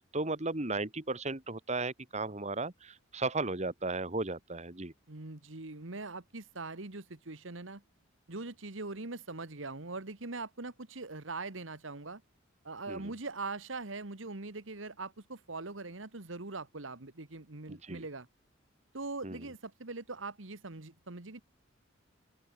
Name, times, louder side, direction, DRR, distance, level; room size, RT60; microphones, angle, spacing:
voice 1, 0.0-4.9 12.9-13.1 17.7-18.1 19.2-19.4, right 3 dB, 35° right, 2.1 m, -35 dB
voice 2, 5.1-7.8 8.3-12.2 12.6-18.3 18.9-21.4, right 3 dB, 75° right, 1.8 m, -42 dB
open air
head